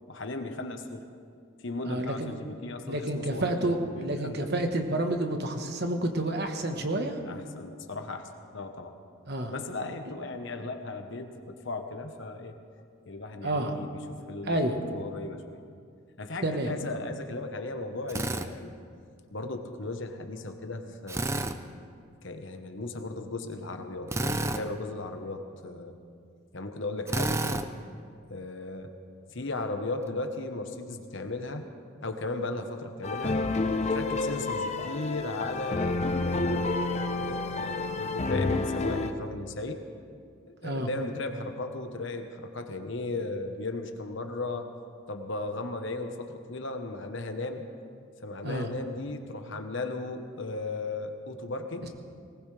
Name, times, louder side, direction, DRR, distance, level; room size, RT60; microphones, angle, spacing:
voice 1, 0.1-1.1 1.6-4.4 7.2-9.0 9.5-12.6 13.1-15.6 16.2-18.7 19.3-21.5 22.2-25.9 26.5-27.6 28.3-28.9 29.3-31.6 32.0-33.4 33.8-36.7 37.1-39.8 40.4-44.7 45.1-47.7 48.2-51.9, left 2 dB, 60° left, 6 dB, 1.1 m, -36 dB
voice 2, 1.8-2.3 2.8-7.2 9.3-9.5 13.4-13.7 14.5-14.7 16.4-16.7 40.6-40.9 48.4-48.7, right 1 dB, 50° right, 5 dB, 1.2 m, -29 dB
Drill, 18.1-18.5 21.1-21.6 24.1-24.6 27.1-27.6, right 2 dB, 15° right, 0.4 m, -29 dB
sound 1, 33.0-39.1, left 3 dB, 30° left, 0.7 m, -29 dB
19.5 x 19.0 x 3.3 m, 2.3 s
head